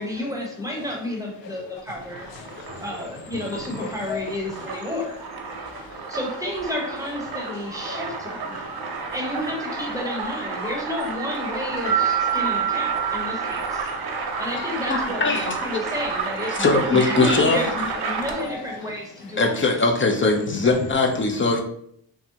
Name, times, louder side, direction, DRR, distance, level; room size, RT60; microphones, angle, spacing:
voice 1, 0.0-2.3 2.8-5.2 6.1-8.6 9.1-13.9 14.4-19.6, left 1 dB, 10° right, 0.9 m, -31 dB
sound 1, 2.0-18.6, right 4 dB, 60° right, 0.7 m, -31 dB
voice 2, 2.4-2.8 3.8-4.2 5.6-6.0 7.9-8.0 8.7-9.1 10.6-10.7 14.3-14.7 18.5-18.6, left 6 dB, 90° left, 0.5 m, -37 dB
sound 2, 11.9-14.5, right 9 dB, 75° left, 1.1 m, -26 dB
voice 3, 14.9-15.5 16.6-17.6 19.4-21.6, left 3 dB, 30° left, 0.6 m, -20 dB
3.5 x 2.1 x 2.8 m
cardioid pair, 65°, 43 cm